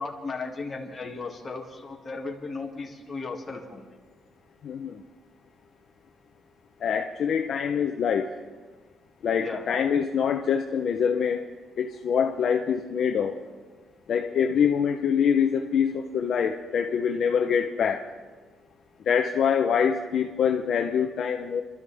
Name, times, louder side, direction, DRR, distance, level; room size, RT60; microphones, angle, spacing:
voice 1, 0.0-3.9 9.4-9.7, left 3 dB, 20° left, -1 dB, 2.1 m, -35 dB
voice 2, 4.6-5.0 6.8-8.3 9.2-11.5 11.8-13.4 14.1-18.1 19.1-21.6, left 7 dB, 50° left, 3 dB, 0.7 m, -25 dB
27.5 x 13.0 x 3.5 m, 1.4 s
cardioid pair, 150°, 0 cm